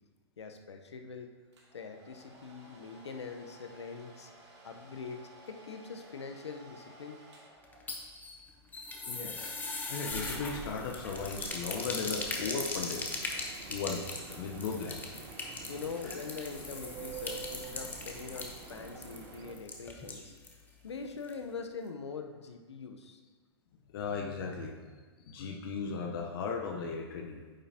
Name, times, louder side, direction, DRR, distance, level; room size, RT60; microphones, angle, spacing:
voice 1, 0.4-1.3 1.7-4.3 4.6-7.2 15.7-20.3 20.8-23.2, left 5 dB, 80° left, 5 dB, 0.9 m, -43 dB
Domestic sounds home sounds, 1.5-8.2, right 1 dB, 80° right, 2.6 m, -56 dB
sound 1, 7.6-20.6 20.9-21.0 21.3-21.4, left 3 dB, 10° left, 1.0 m, -40 dB
voice 2, 9.0-9.6 9.9-13.1 13.7-15.1 16.0-16.1 23.9-25.0 25.2-27.5, left 5 dB, 55° left, 2 dB, 0.9 m, -37 dB
sound 2, 10.1-19.6, right 5 dB, 40° right, 0.9 m, -47 dB
9.2 x 7.1 x 2.8 m, 1.4 s
hypercardioid pair, 120°, 14 cm